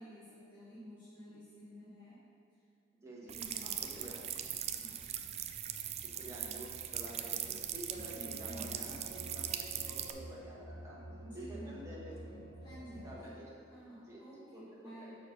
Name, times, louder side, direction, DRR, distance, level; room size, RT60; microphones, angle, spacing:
voice 1, 0.0-2.2 3.2-4.0 4.3-5.0 7.5-7.6 7.9-8.9 11.2-11.9 12.3-13.3 13.7-15.1, equal, 25° left, -12 dB, 1.5 m, -52 dB
voice 2, 3.0-3.3 3.6-4.2 5.9-9.5 9.8-11.0 11.3-12.2 13.0-13.6 14.1-15.2, right 1 dB, 15° right, -6 dB, 1.4 m, -49 dB
sound 1, 3.3-10.1, right 9 dB, 35° right, 0.3 m, -40 dB
sound 2, 7.9-13.2, right 1 dB, 85° right, 0.7 m, -49 dB
6.4 x 4.4 x 6.0 m, 2.5 s
head